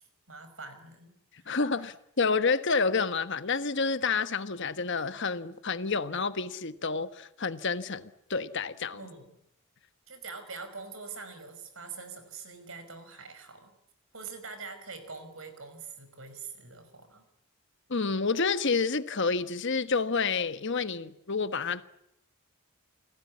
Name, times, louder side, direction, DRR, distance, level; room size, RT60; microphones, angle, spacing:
voice 1, 0.0-1.9 8.9-9.3 10.1-13.7 14.1-17.3, right 4 dB, 60° right, 5.2 m, -44 dB
voice 2, 1.5-9.0 17.9-21.8, left 4 dB, 55° left, 1.2 m, -29 dB
29.5 x 19.5 x 8.5 m
head